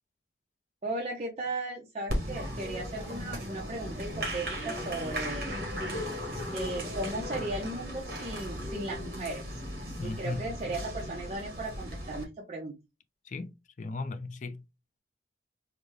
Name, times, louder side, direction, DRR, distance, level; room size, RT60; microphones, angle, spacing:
voice 1, 0.8-5.6 6.5-9.6 10.0-12.8, right 2 dB, 35° right, 0.7 m, -36 dB
Applause, 2.1-12.2, equal, 55° right, 1.3 m, -36 dB
voice 2, 9.8-10.4 13.3-14.6, left 3 dB, 45° left, 0.4 m, -37 dB
3.8 x 2.1 x 3.2 m
head